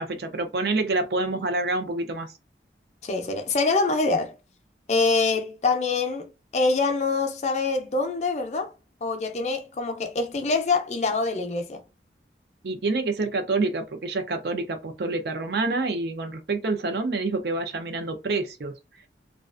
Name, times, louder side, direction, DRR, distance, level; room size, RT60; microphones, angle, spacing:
voice 1, 0.0-2.3 12.6-18.7, right 3 dB, 65° right, 0.5 m, -27 dB
voice 2, 3.0-4.3 4.9-6.3 6.5-8.7 9.0-11.8, left 3 dB, 40° left, 0.4 m, -25 dB
2.4 x 2.3 x 2.4 m
head